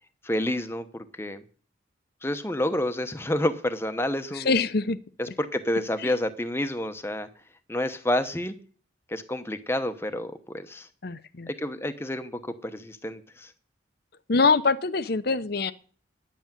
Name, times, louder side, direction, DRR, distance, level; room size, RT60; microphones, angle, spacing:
voice 1, 0.2-1.4 2.2-4.5 5.2-7.3 7.7-8.5 9.1-10.9 11.5-13.5, left 1 dB, 10° left, 0.9 m, -29 dB
voice 2, 4.3-5.0 6.0-6.1 11.0-11.5 14.3-15.7, left 4 dB, 55° left, 0.7 m, -24 dB
10.0 x 8.4 x 8.9 m
head